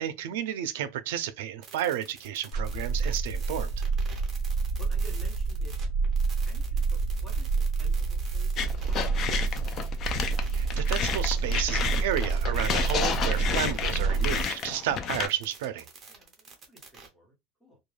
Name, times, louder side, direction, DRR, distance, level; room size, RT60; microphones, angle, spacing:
voice 1, 0.0-3.8 10.5-15.9, right 11 dB, 80° right, 0.4 m, -32 dB
sound 1, 1.6-14.8 15.1-17.1, right 5 dB, 20° right, 0.7 m, -49 dB
sound 2, 2.5-14.4, right 4 dB, 85° left, 0.6 m, -28 dB
voice 2, 4.8-7.5 7.8-9.5 16.1-17.3 17.6-17.8, right 1 dB, ahead, 1.0 m, -53 dB
sound 3, 8.6-15.3, left 7 dB, 30° left, 0.3 m, -31 dB
2.3 x 2.2 x 3.2 m
cardioid pair, 170°, 0 cm